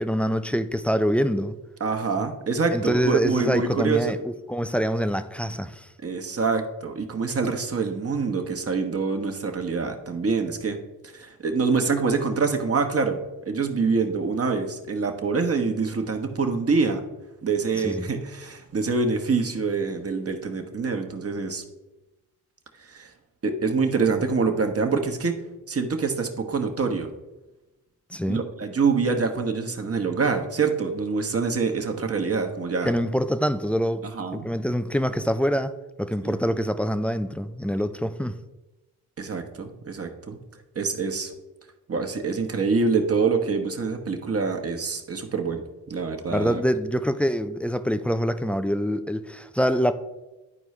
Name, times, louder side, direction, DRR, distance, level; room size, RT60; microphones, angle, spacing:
voice 1, 0.0-1.6 2.7-5.9 17.7-18.1 28.1-28.4 32.8-34.0 34.3-38.4 46.3-49.9, equal, 5° left, 0.3 m, -25 dB
voice 2, 1.8-4.1 6.0-10.8 11.0-13.2 13.5-17.0 17.4-21.6 22.8-23.1 23.4-25.3 25.7-27.1 28.3-32.9 34.0-34.5 36.2-36.4 39.2-40.4 40.7-41.3 41.9-46.6, right 4 dB, 35° right, 1.2 m, -25 dB
11.0 x 4.5 x 3.2 m
supercardioid pair, 55°, 43 cm